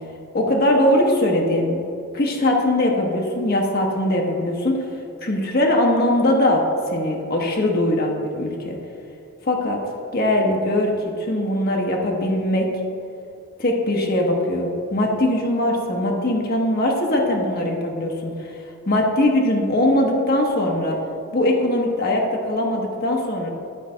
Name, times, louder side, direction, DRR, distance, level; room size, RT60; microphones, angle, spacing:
voice 1, 0.3-1.8 2.1-4.8 5.2-8.8 9.4-9.8 10.1-12.7 13.6-18.6 18.9-21.0 21.3-23.5, left 1 dB, 45° left, 0 dB, 0.9 m, -21 dB
11.5 x 4.6 x 3.8 m, 2.7 s
head